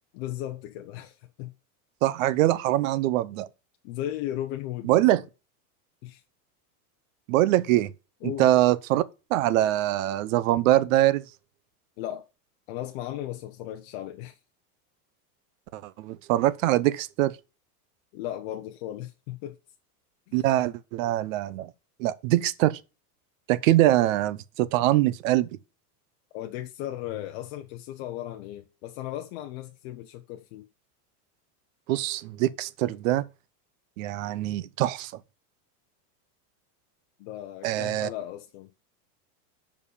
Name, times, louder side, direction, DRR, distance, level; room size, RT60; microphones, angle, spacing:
voice 1, 0.1-1.5 3.8-5.2 6.0-6.2 8.2-8.5 12.0-12.3 12.7-14.4 18.1-19.6 26.3-30.7 37.2-38.7, left 13 dB, 40° left, 0.7 m, -36 dB
voice 2, 2.0-3.5 4.8-5.2 7.3-7.9 8.2-9.0 9.3-11.2 15.7-17.3 20.3-21.7 22.0-22.8 23.5-25.5 31.9-33.2 34.0-35.1 37.6-38.1, right 15 dB, 55° right, 0.7 m, -23 dB
6.8 x 5.3 x 6.8 m
supercardioid pair, 170°, 47 cm